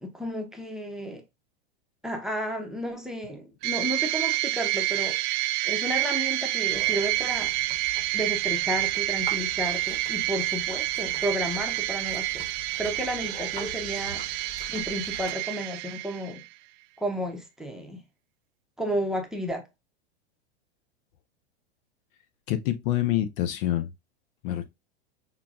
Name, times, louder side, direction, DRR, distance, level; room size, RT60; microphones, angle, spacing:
voice 1, 0.0-1.2 2.0-7.5 8.1-12.5 12.8-16.4 17.0-18.0 18.8-19.7, equal, ahead, 0.8 m, -32 dB
sound 1, 3.6-16.5, right 18 dB, 45° right, 0.4 m, -28 dB
sound 2, 6.7-15.3, left 2 dB, 15° left, 1.2 m, -45 dB
voice 2, 22.5-23.9 24.4-24.7, left 13 dB, 55° left, 0.7 m, -26 dB
5.7 x 2.3 x 2.3 m
hypercardioid pair, 120°, 33 cm